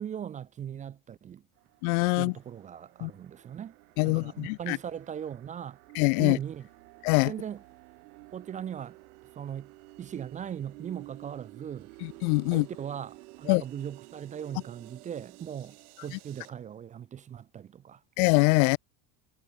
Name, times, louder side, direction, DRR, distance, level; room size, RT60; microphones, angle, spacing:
voice 1, 0.0-1.4 2.1-3.7 4.0-5.8 6.2-6.7 7.2-7.6 8.3-9.0 9.4-9.7 10.0-11.9 12.5-18.0, right 9 dB, 15° right, 0.5 m, -39 dB
sound 1, 1.6-16.5, right 24 dB, 85° right, 4.6 m, -52 dB
voice 2, 1.8-2.3 3.0-3.1 4.0-4.8 6.0-6.4 7.0-7.3 12.0-12.6 13.5-13.6 18.2-18.8, left 31 dB, 75° left, 0.6 m, -24 dB
cardioid pair, 165°, 44 cm